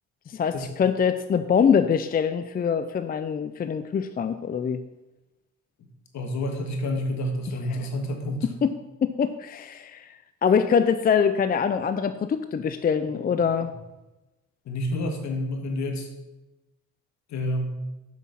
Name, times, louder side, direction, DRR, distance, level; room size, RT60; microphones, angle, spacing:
voice 1, 0.3-4.8 7.7-7.9 8.6-8.7 9.0-13.7, left 7 dB, 30° left, 10 dB, 0.4 m, -24 dB
voice 2, 6.1-8.5 14.7-16.1 17.3-17.8, left 1 dB, 65° left, 4 dB, 1.7 m, -29 dB
7.4 x 6.1 x 5.7 m, 1.0 s
cardioid pair, 90°, 30 cm